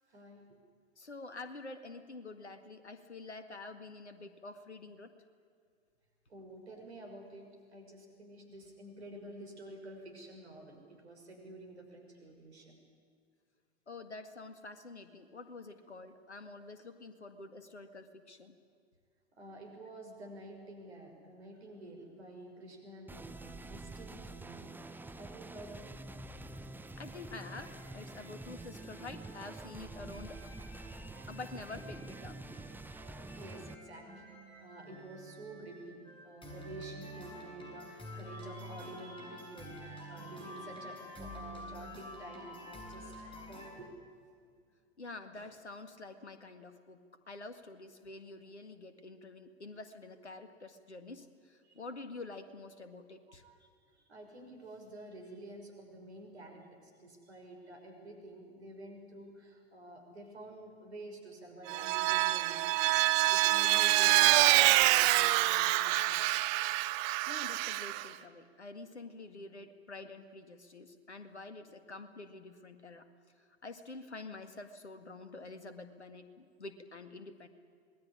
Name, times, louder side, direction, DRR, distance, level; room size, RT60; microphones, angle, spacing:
voice 1, 0.1-0.4 6.3-12.8 19.4-24.7 25.1-26.0 33.4-34.3 34.6-43.1 43.5-43.9 51.6-51.8 53.3-53.7 54.1-66.2, right 1 dB, 75° right, 3 dB, 6.1 m, -50 dB
voice 2, 1.0-5.1 6.4-6.5 13.9-18.6 27.0-30.5 31.3-32.4 45.0-47.0 47.3-53.4 67.3-73.1 73.6-77.5, left 3 dB, 80° left, 9 dB, 2.0 m, -47 dB
sound 1, 23.1-33.7, right 2 dB, 5° right, 1.0 m, -47 dB
sound 2, 27.4-43.7, equal, 15° left, 7.2 m, -49 dB
Vehicle, 61.7-68.1, right 18 dB, 40° right, 0.9 m, -26 dB
26.0 x 20.5 x 9.9 m, 2.2 s
figure-of-eight pair, 90°, 33 cm